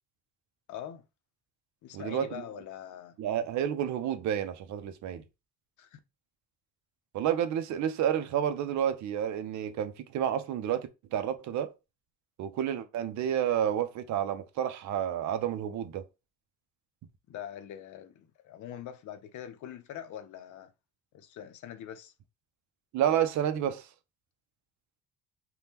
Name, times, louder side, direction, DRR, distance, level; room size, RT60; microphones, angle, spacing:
voice 1, 0.7-1.0 1.8-3.2 5.8-6.0 17.3-20.7 21.1-22.1, left 10 dB, 75° left, 0.6 m, -43 dB
voice 2, 1.9-2.5 3.2-5.2 7.1-11.7 12.4-16.0 22.9-23.9, right 9 dB, 70° right, 0.5 m, -30 dB
2.7 x 2.2 x 3.4 m
cardioid pair, 90°, 30 cm